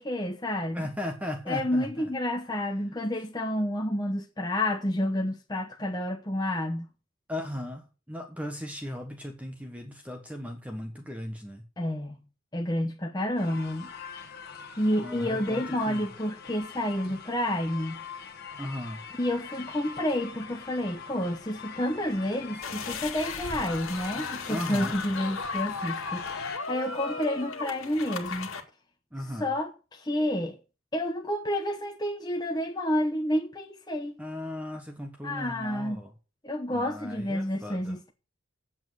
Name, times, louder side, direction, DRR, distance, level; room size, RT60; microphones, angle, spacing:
voice 1, 0.0-0.8 1.5-6.9 11.8-12.2 12.5-13.9 14.8-18.0 19.2-26.4 26.7-28.5 29.4-30.6 30.9-34.2 35.2-36.0 36.4-38.1, left 1 dB, 20° left, 1.0 m, -29 dB
voice 2, 0.7-2.1 7.3-11.6 15.0-16.1 18.6-19.0 24.5-25.0 29.1-29.5 34.2-36.1 36.7-38.0, left 1 dB, 5° right, 1.3 m, -37 dB
sound 1, 13.4-26.6, left 6 dB, 45° left, 1.5 m, -43 dB
sound 2, 22.6-28.6, left 4 dB, 70° left, 1.9 m, -36 dB
8.8 x 7.4 x 7.7 m
head